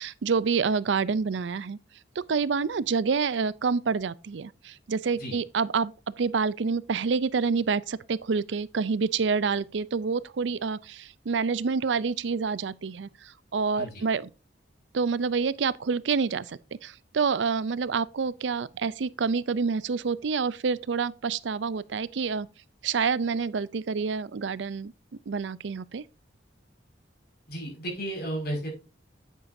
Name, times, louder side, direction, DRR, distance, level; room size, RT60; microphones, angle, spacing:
voice 1, 0.0-1.8 2.2-14.3 14.9-22.5 22.8-24.9 25.3-26.0, right 5 dB, 75° right, 0.5 m, -28 dB
voice 2, 27.5-28.7, right 1 dB, 60° left, 5.6 m, -33 dB
9.6 x 8.3 x 2.7 m
head